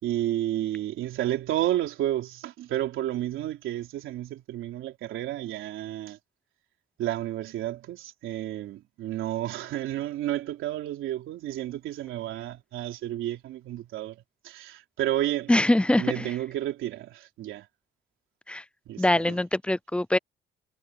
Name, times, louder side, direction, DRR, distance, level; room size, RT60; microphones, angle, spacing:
voice 1, 0.0-6.2 7.0-15.5 16.0-17.7 18.9-19.4, right 13 dB, 85° right, 3.6 m, -31 dB
voice 2, 15.5-16.3 18.5-18.6 19.0-20.2, left 1 dB, 5° left, 0.5 m, -23 dB
cardioid pair, 90°, 20 cm